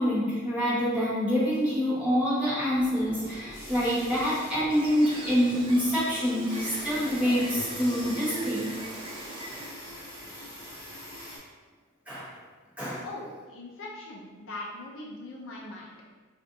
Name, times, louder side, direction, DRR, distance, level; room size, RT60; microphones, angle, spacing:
voice 1, 0.0-8.7 12.1-12.3 12.8-13.0, equal, 5° right, -10 dB, 1.2 m, -26 dB
sound 1, 2.7-11.4, equal, 20° left, 1.2 m, -41 dB
Gull seagull, 4.7-9.7, right 1 dB, 25° right, 0.4 m, -42 dB
voice 2, 13.0-15.9, left 2 dB, 60° left, -2 dB, 0.5 m, -41 dB
4.5 x 2.5 x 2.6 m, 1.4 s
head